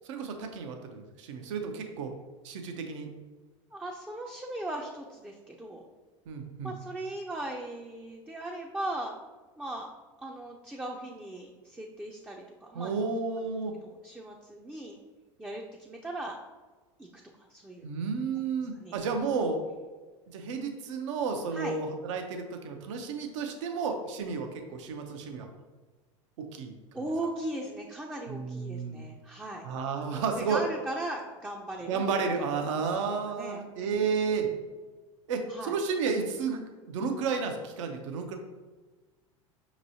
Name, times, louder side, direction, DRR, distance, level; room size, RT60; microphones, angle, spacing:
voice 1, 0.0-2.1 2.4-3.1 6.3-6.7 12.7-13.7 17.8-19.6 20.3-25.5 26.4-27.0 28.3-29.0 29.6-30.6 31.9-34.5 35.3-38.4, right 5 dB, 70° right, 4 dB, 0.6 m, -32 dB
voice 2, 3.7-5.9 6.6-9.2 9.6-9.9 10.2-12.9 13.8-15.0 15.4-16.4 17.0-17.2 17.5-17.8 18.8-19.0 21.5-21.8 26.9-29.7 30.0-32.0 32.3-32.6 33.3-33.6 35.5-35.7, right 1 dB, 10° right, 0 dB, 0.4 m, -38 dB
5.2 x 3.0 x 2.7 m, 1.3 s
hypercardioid pair, 85°, 16 cm